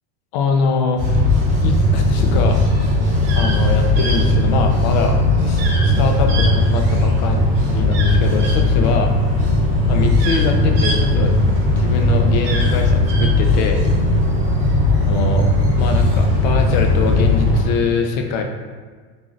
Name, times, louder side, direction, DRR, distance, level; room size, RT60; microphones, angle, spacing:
voice 1, 0.3-1.3 1.6-2.6 3.3-5.2 5.4-9.1 9.9-11.3 11.7-13.8 15.1-15.5 15.8-18.4, left 4 dB, 45° left, 4 dB, 0.4 m, -23 dB
sound 1, 1.0-17.6, left 1 dB, 25° right, 0.8 m, -17 dB
sound 2, 3.2-3.6 4.0-4.2 5.6-5.9 6.3-7.1 7.9-8.6 9.5-9.6 9.9-11.7 12.3-13.3, right 2 dB, 70° right, 0.8 m, -28 dB
3.8 x 3.0 x 2.5 m, 1.5 s
supercardioid pair, 180°, 31 cm